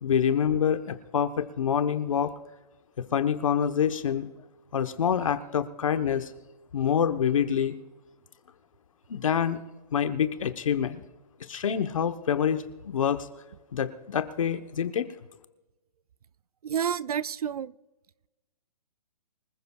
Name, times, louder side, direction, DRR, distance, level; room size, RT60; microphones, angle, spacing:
voice 1, 0.0-2.3 3.0-4.3 4.7-6.3 6.7-7.7 9.1-9.6 9.9-11.0 11.5-13.3 13.7-15.0, left 8 dB, 55° left, 9 dB, 1.0 m, -26 dB
voice 2, 16.6-17.7, right 8 dB, 65° right, 18 dB, 0.5 m, -29 dB
25.0 x 15.0 x 2.3 m, 1.1 s
hypercardioid pair, 170°, 21 cm